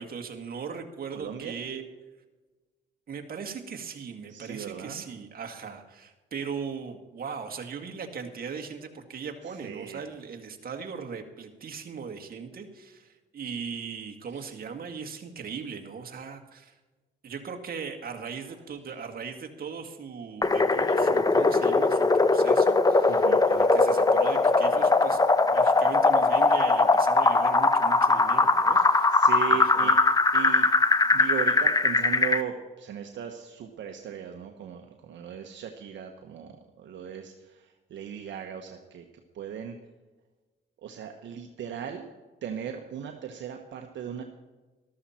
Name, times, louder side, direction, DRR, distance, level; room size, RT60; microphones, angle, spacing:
voice 1, 0.0-1.8 3.1-16.7 17.2-25.2 25.5-29.2 29.5-29.9, right 6 dB, 50° right, 4 dB, 1.9 m, -39 dB
voice 2, 1.1-1.5 4.3-5.0 9.5-10.0 14.3-14.5 23.1-23.4 28.8-29.9 30.3-30.7 31.1-39.0 39.3-39.8 40.8-42.0 42.4-44.2, right 8 dB, 70° right, 3 dB, 1.2 m, -37 dB
sound 1, 20.4-32.4, left 3 dB, 20° left, 0.8 m, -21 dB
13.5 x 13.0 x 4.4 m, 1.2 s
cardioid pair, 90°, 20 cm